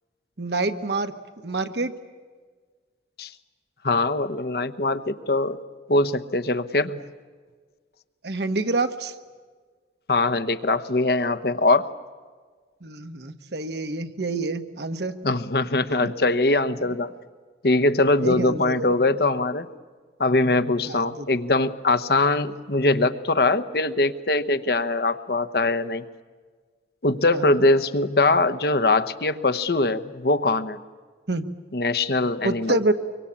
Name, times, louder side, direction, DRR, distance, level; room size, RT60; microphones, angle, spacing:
voice 1, 0.4-1.1 1.4-1.9 8.2-9.1 12.8-15.1 16.0-16.1 18.2-18.9 20.9-21.3 27.3-27.6 31.3-31.5 32.4-32.9, right 2 dB, 70° right, 8 dB, 1.3 m, -27 dB
voice 2, 3.8-5.6 5.9-7.0 10.1-11.9 15.2-17.1 17.6-19.7 20.2-26.0 27.0-30.8 31.7-32.8, left 2 dB, 60° left, 11 dB, 1.0 m, -22 dB
24.5 x 23.5 x 8.6 m, 1.5 s
head